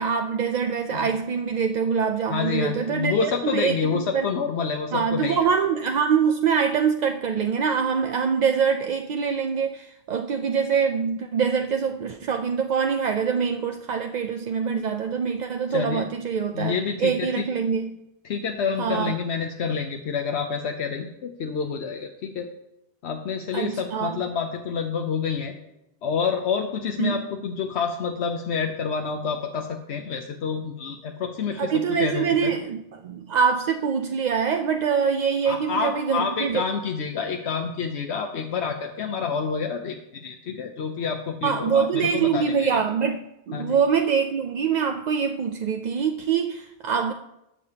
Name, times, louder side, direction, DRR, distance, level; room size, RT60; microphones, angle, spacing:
voice 1, 0.0-4.3 4.9-16.7 17.0-18.0 18.8-19.1 23.5-24.2 27.0-27.3 31.6-36.6 41.4-47.1, right 6 dB, 55° right, 5 dB, 0.5 m, -24 dB
voice 2, 2.3-5.4 15.7-16.1 16.5-17.5 18.2-22.5 23.0-25.5 26.0-32.5 35.5-42.8 43.5-43.8, left 6 dB, 85° left, 4 dB, 1.0 m, -28 dB
18.5 x 6.7 x 2.8 m, 0.88 s
omnidirectional pair, 1.1 m